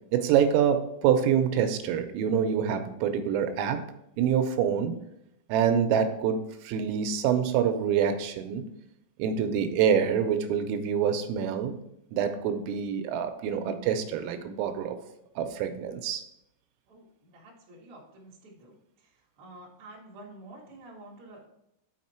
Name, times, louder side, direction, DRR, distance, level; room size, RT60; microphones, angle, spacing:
voice 1, 0.1-3.8 4.2-5.0 5.5-8.7 9.2-11.8 12.1-15.0 15.4-16.2, right 8 dB, 85° right, 8 dB, 3.3 m, -26 dB
voice 2, 16.9-18.7 19.0-19.1 19.4-21.5, right 2 dB, 55° right, -4 dB, 1.5 m, -49 dB
7.3 x 5.8 x 4.3 m, 0.81 s
omnidirectional pair, 5.8 m